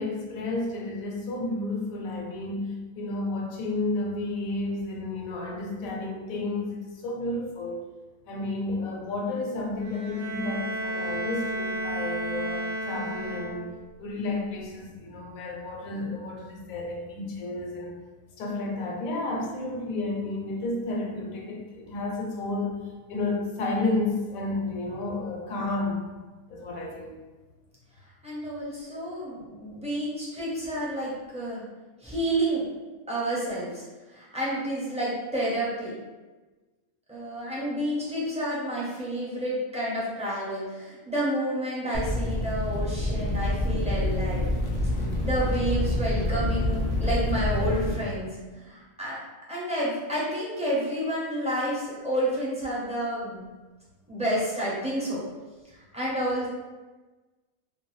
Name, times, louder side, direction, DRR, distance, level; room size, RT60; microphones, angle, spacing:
voice 1, 0.0-7.9 8.3-13.7 14.0-18.0 18.4-22.8 23.1-26.0 26.5-27.2, left 2 dB, 75° left, 0 dB, 1.0 m, -31 dB
Bowed string instrument, 9.8-13.9, right 1 dB, 75° right, 1.0 m, -32 dB
voice 2, 28.2-31.6 32.0-32.6 33.1-33.8 34.1-35.9 37.1-44.5 45.2-48.3 48.5-49.2 49.5-53.4 54.1-55.2 55.7-56.5, right 1 dB, 10° right, -8 dB, 0.3 m, -30 dB
sound 1, 41.9-47.9, left 1 dB, 55° left, 0.4 m, -27 dB
2.6 x 2.3 x 3.1 m, 1.2 s
omnidirectional pair, 1.5 m